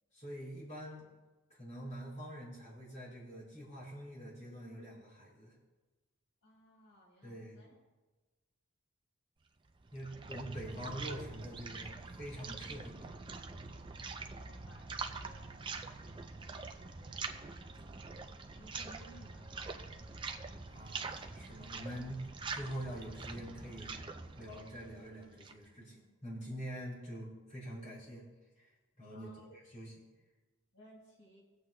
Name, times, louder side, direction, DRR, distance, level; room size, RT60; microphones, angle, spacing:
voice 1, 0.1-1.1 1.5-5.5 7.2-7.6 9.9-12.9 20.6-22.2 22.5-23.9 24.4-28.2 28.6-28.7 29.0-30.0, equal, 35° left, -7 dB, 4.2 m, -45 dB
voice 2, 6.4-7.8 14.2-17.2 17.7-17.8 18.5-19.8 29.1-29.4 30.7-31.4, equal, 80° left, -3 dB, 4.1 m, -60 dB
sound 1, 9.6-25.7, right 4 dB, 20° right, 0.4 m, -45 dB
24.0 x 8.0 x 2.2 m, 1.2 s
head